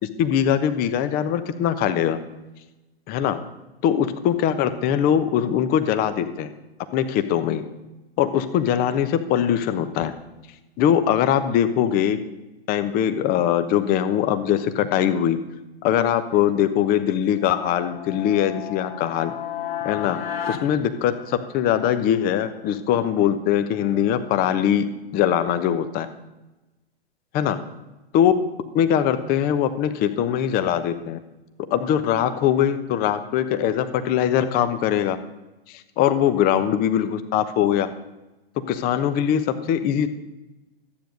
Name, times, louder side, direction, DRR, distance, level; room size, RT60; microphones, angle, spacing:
voice 1, 0.0-2.2 3.1-3.4 3.8-6.5 6.9-7.6 8.2-10.1 10.8-12.2 12.7-15.4 15.8-19.3 19.8-20.2 20.5-24.9 25.1-26.1 27.3-27.6 28.1-28.3 28.7-31.2 31.7-35.2 35.7-37.9 38.7-40.1, left 9 dB, 30° left, 10 dB, 1.0 m, -21 dB
sound 1, 17.4-21.7, left 8 dB, 70° left, 1.5 m, -33 dB
13.0 x 9.2 x 6.5 m, 1.0 s
figure-of-eight pair, 110°, 31 cm